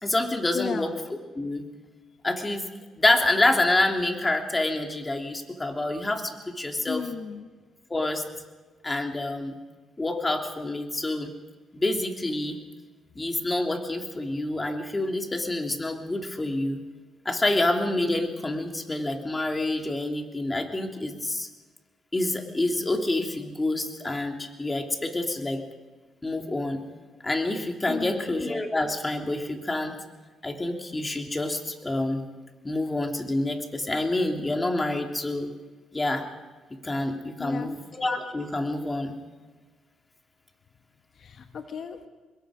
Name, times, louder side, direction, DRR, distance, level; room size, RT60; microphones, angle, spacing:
voice 1, 0.0-1.6 2.2-2.6 3.0-7.1 7.9-8.2 8.8-9.5 10.0-11.3 11.7-12.6 13.1-16.8 17.2-21.5 22.1-25.6 26.2-26.8 27.2-29.9 30.4-32.2 32.6-35.5 35.9-36.2 36.8-39.1, left 2 dB, 20° left, 3 dB, 3.1 m, -27 dB
voice 2, 0.5-0.9 6.9-7.5 27.9-28.4 37.4-37.7 41.2-42.1, left 6 dB, 55° left, 6 dB, 1.4 m, -35 dB
25.0 x 22.0 x 5.1 m, 1.3 s
cardioid pair, 90°, 0 cm